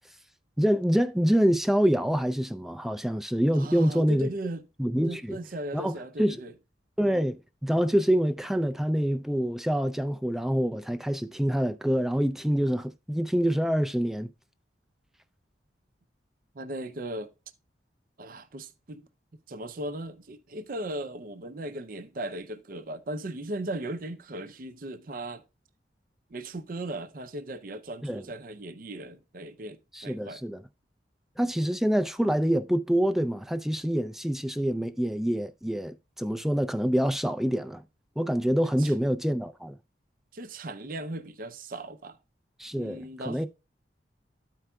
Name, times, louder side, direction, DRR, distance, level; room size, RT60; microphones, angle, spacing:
voice 1, 0.6-4.3 4.8-5.4 5.7-6.4 7.0-14.3 28.0-28.2 29.9-30.6 31.4-37.8 38.2-39.8 42.6-43.5, equal, ahead, 0.3 m, -26 dB
voice 2, 3.5-4.7 5.1-6.5 16.5-17.3 18.2-19.1 19.5-25.4 26.3-30.4 38.6-38.9 40.3-42.2 42.8-43.5, right 1 dB, 50° right, 0.5 m, -37 dB
13.5 x 4.6 x 2.2 m
head